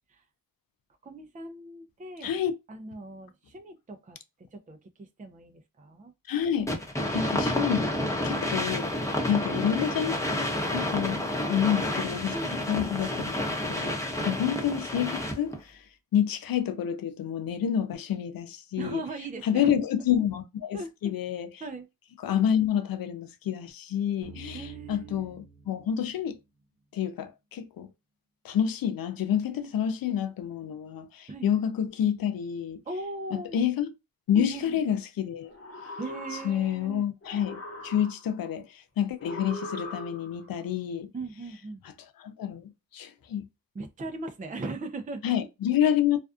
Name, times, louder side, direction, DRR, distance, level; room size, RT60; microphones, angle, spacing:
voice 1, 1.0-2.3 2.7-4.2 4.5-6.1 9.3-9.4 11.4-12.6 14.2-14.4 18.8-19.8 20.7-21.1 21.6-21.9 24.5-25.3 31.3-31.5 32.9-33.6 34.3-34.8 36.0-37.0 41.1-41.8 43.7-45.3, right 2 dB, 25° right, 0.5 m, -39 dB
voice 2, 6.3-6.7 7.1-7.9 8.2-8.9 9.2-11.2 11.5-12.3 12.7-13.3 13.7-15.8 16.1-19.0 19.4-21.5 22.2-26.4 26.9-27.9 28.4-32.8 33.3-33.9 34.3-35.5 36.4-41.1 42.2-43.4 45.2-46.2, left 9 dB, 90° left, 0.5 m, -28 dB
sound 1, 6.7-15.6, left 1 dB, 10° left, 0.8 m, -30 dB
sound 2, 24.2-27.1, right 4 dB, 65° right, 0.9 m, -49 dB
sound 3, 35.4-36.9 37.2-38.5 39.2-40.5, left 2 dB, 45° left, 0.8 m, -40 dB
2.5 x 2.3 x 2.3 m
cardioid pair, 50°, 34 cm